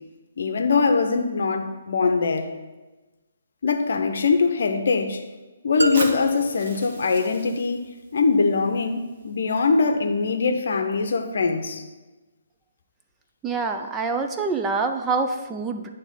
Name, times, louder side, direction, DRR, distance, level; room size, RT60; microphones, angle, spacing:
voice 1, 0.4-2.5 3.6-5.2 5.6-11.8, left 4 dB, 55° left, 0.7 m, -22 dB
sound 1, 5.8-7.8, right 2 dB, 85° right, 0.4 m, -31 dB
Fire, 5.9-10.0, right 2 dB, 50° right, 1.3 m, -39 dB
voice 2, 13.4-15.9, right 4 dB, 15° right, 0.4 m, -26 dB
9.0 x 3.4 x 5.4 m
figure-of-eight pair, 135°, 0 cm